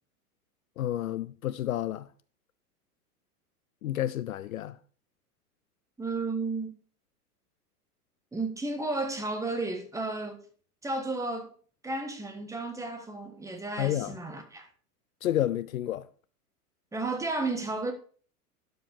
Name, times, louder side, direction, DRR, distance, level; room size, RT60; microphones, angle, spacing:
voice 1, 0.8-2.1 3.8-4.8 13.8-14.2 15.2-16.1, left 12 dB, 60° left, 0.6 m, -30 dB
voice 2, 6.0-6.7 8.3-10.4 10.8-11.5 11.8-14.7 16.9-17.9, right 3 dB, 5° right, 1.4 m, -33 dB
12.0 x 5.2 x 4.9 m
figure-of-eight pair, 95°, 47 cm